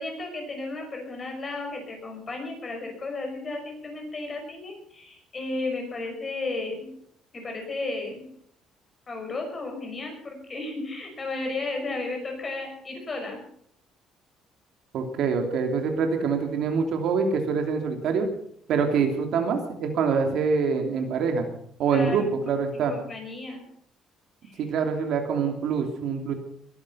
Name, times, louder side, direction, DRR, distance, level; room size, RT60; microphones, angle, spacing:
voice 1, 0.0-6.9 7.3-8.3 9.1-13.4 21.9-22.4 22.7-23.6 24.4-24.6, left 2 dB, 25° left, 2 dB, 5.8 m, -34 dB
voice 2, 14.9-18.3 18.7-21.5 21.8-22.9 24.6-26.3, right 5 dB, 60° right, 4 dB, 3.0 m, -25 dB
21.5 x 11.5 x 5.7 m, 0.66 s
cardioid pair, 145°, 0 cm